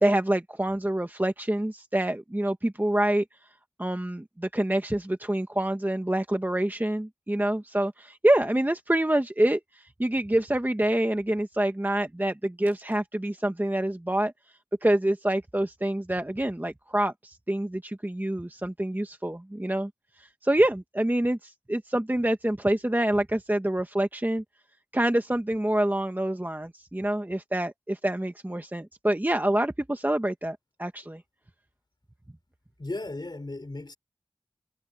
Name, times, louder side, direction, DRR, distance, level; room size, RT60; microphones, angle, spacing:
voice 1, 0.0-3.2 3.8-14.3 14.8-19.9 20.2-24.4 24.9-31.2, right 1 dB, 20° right, 1.3 m, -26 dB
voice 2, 32.8-34.0, left 2 dB, 50° left, 3.6 m, -35 dB
wide cardioid pair, 40°, 10 cm